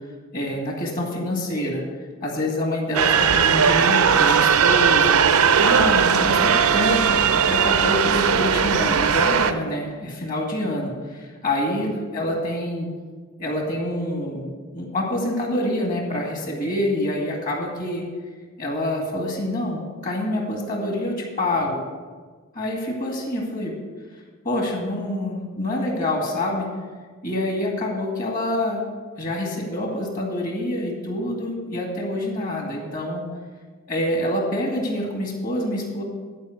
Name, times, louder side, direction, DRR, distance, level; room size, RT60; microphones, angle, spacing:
voice 1, 0.3-1.8 2.2-5.2 5.6-12.9 13.4-18.0 18.6-21.8 22.5-23.7 24.4-26.7 27.2-28.8 29.2-33.2 33.9-36.0, left 1 dB, 40° left, 0 dB, 2.2 m, -26 dB
sound 1, 2.9-9.5, right 7 dB, 85° right, 0.6 m, -18 dB
11.0 x 5.1 x 7.9 m, 1.5 s
head